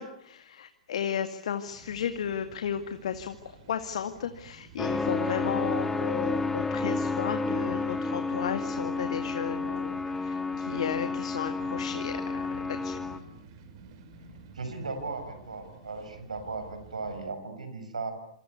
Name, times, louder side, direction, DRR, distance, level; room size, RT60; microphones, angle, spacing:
voice 1, 0.0-12.4 12.7-13.0, left 8 dB, 65° left, 8 dB, 2.1 m, -34 dB
sound 1, 1.7-17.3, right 4 dB, 50° right, 5.5 m, -51 dB
sound 2, 4.8-13.2, left 3 dB, 10° left, 2.5 m, -31 dB
voice 2, 14.5-18.1, right 3 dB, 80° right, 10 dB, 7.0 m, -37 dB
27.5 x 26.5 x 8.3 m, 0.66 s
figure-of-eight pair, 110°, 4 cm